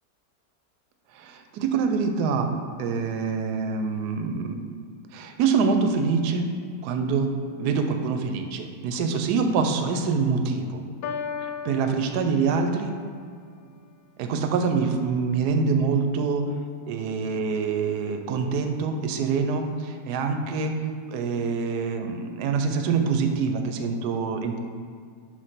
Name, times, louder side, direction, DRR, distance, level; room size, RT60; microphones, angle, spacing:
voice 1, 1.2-2.5 2.8-4.6 5.1-6.5 6.8-7.3 7.6-10.8 11.4-12.9 14.2-16.4 16.9-20.7 21.1-24.6, right 5 dB, 75° right, 6 dB, 1.2 m, -25 dB
Piano, 11.0-13.0, left 6 dB, 65° left, 1.0 m, -35 dB
6.0 x 5.1 x 5.7 m, 2.2 s
omnidirectional pair, 1.9 m